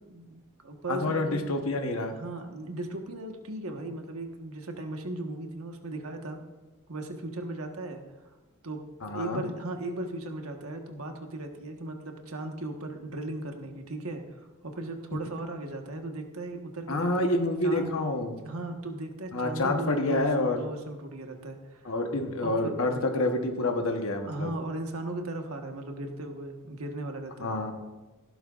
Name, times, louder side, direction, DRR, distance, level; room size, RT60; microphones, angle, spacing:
voice 1, 0.1-6.4 6.9-8.0 8.6-17.1 17.6-17.9 18.4-21.8 22.4-22.7 24.3-27.5, right 2 dB, 85° right, 4 dB, 1.4 m, -37 dB
voice 2, 0.9-2.1 9.0-9.4 16.9-18.4 19.3-20.6 21.8-24.5 27.4-27.7, left 2 dB, 75° left, 4 dB, 1.1 m, -28 dB
15.5 x 12.0 x 2.5 m, 1.1 s
head